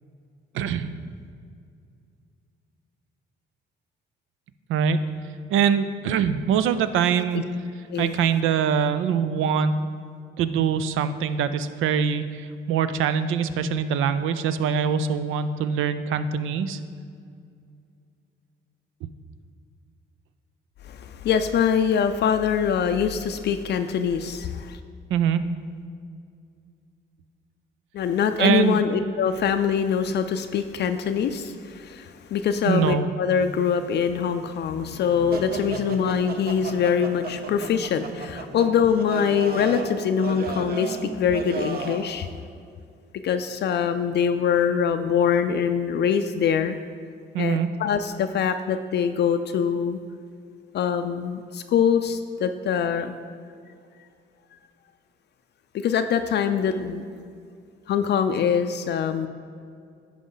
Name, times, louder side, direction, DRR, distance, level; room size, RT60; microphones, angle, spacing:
voice 1, 0.5-0.9 4.7-5.0 5.5-7.4 8.0-9.8 10.4-16.8 25.1-25.4 28.4-28.8 32.7-33.1 47.3-47.7, right 7 dB, 85° right, 12 dB, 0.4 m, -23 dB
voice 2, 20.8-24.8 27.9-42.3 43.2-46.8 47.4-50.0 50.7-53.1 55.7-57.0 57.9-59.3, left 7 dB, 60° left, 8 dB, 0.4 m, -24 dB
sound 1, 35.3-42.1, right 4 dB, 50° right, 0.8 m, -34 dB
10.5 x 5.0 x 3.9 m, 2.3 s
cardioid pair, 90°, 20 cm